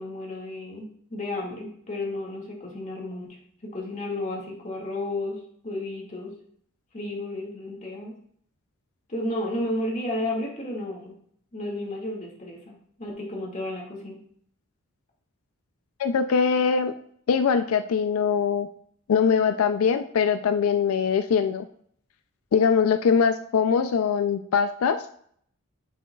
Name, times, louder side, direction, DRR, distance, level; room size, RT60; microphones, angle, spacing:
voice 1, 0.0-3.3 3.6-5.4 5.6-6.3 6.9-8.1 9.1-11.1 11.5-14.2, left 1 dB, 35° left, -2 dB, 1.9 m, -32 dB
voice 2, 16.0-16.9 17.3-18.7 19.1-21.7 22.5-25.0, left 6 dB, 85° left, 9 dB, 0.4 m, -22 dB
8.5 x 7.0 x 2.3 m, 0.64 s
head